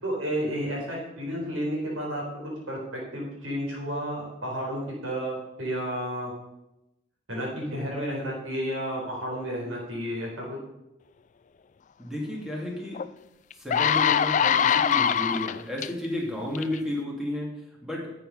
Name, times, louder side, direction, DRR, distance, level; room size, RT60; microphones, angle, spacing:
voice 1, 0.0-6.3 7.3-10.6, equal, 75° right, -3 dB, 4.4 m, -32 dB
voice 2, 12.0-13.0 13.5-18.1, left 1 dB, ahead, -3 dB, 2.4 m, -32 dB
sound 1, 12.9-13.0 13.5-15.9 16.6-16.8, left 8 dB, 35° left, 0.3 m, -23 dB
11.5 x 7.5 x 5.6 m, 0.91 s
head